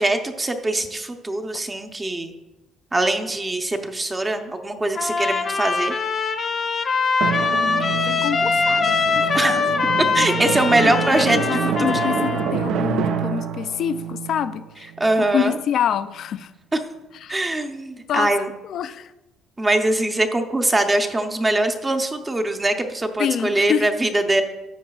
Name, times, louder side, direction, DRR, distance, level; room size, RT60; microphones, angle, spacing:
voice 1, 0.0-2.3 2.9-5.9 9.3-9.6 10.1-11.9 15.0-15.6 16.7-16.8 17.3-18.5 19.6-24.4, right 2 dB, 15° right, 0.6 m, -22 dB
Trumpet, 4.9-12.5, left 4 dB, 35° left, 0.8 m, -23 dB
Drum, 7.2-15.5, right 7 dB, 70° right, 0.5 m, -27 dB
voice 2, 7.5-10.3 10.8-14.9 15.3-16.5 17.2-17.4 18.1-19.1 23.2-23.9, left 9 dB, 55° left, 0.3 m, -27 dB
13.0 x 8.2 x 2.3 m
cardioid pair, 145°, 0 cm